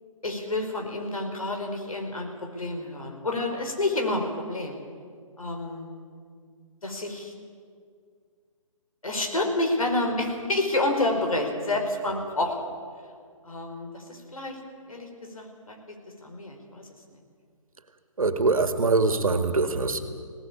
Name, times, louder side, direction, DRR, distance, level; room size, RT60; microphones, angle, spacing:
voice 1, 0.2-4.8 5.4-6.0 6.8-7.3 9.0-12.6 13.4-14.6 14.9-16.9, left 2 dB, 80° left, 3 dB, 4.9 m, -29 dB
voice 2, 18.2-20.0, right 3 dB, 80° right, 8 dB, 2.1 m, -23 dB
20.0 x 18.0 x 8.7 m, 2.1 s
figure-of-eight pair, 145°, 18 cm